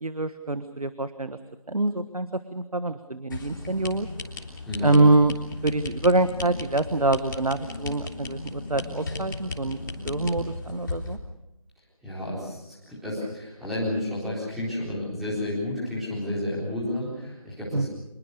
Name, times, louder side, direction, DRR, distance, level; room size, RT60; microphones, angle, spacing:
voice 1, 0.0-1.4 1.7-4.1 4.8-5.3 5.6-9.8 10.0-11.2 17.7-17.9, right 2 dB, 85° right, 11 dB, 1.4 m, -25 dB
sound 1, 3.3-11.2, left 3 dB, 35° left, 3.5 m, -36 dB
voice 2, 4.6-5.0 12.0-17.9, left 1 dB, ahead, -8 dB, 4.0 m, -31 dB
26.0 x 22.0 x 6.7 m, 0.92 s
figure-of-eight pair, 165°, 19 cm